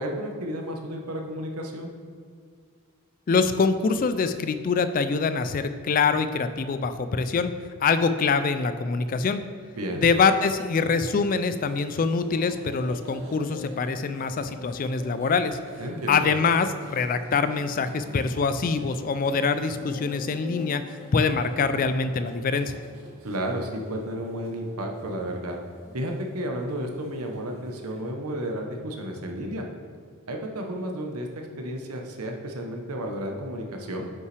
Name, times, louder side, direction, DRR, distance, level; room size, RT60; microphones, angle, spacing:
voice 1, 0.0-1.9 9.7-10.1 15.8-16.3 23.2-25.6 25.9-29.7 30.3-34.1, equal, 85° right, 2 dB, 1.0 m, -32 dB
voice 2, 3.3-7.5 7.8-9.4 10.0-15.6 16.1-20.8 21.1-22.8, left 4 dB, 40° left, 11 dB, 0.3 m, -24 dB
sound 1, 9.8-28.0, left 1 dB, 70° right, 1.8 m, -46 dB
9.3 x 5.5 x 3.3 m, 2.1 s
head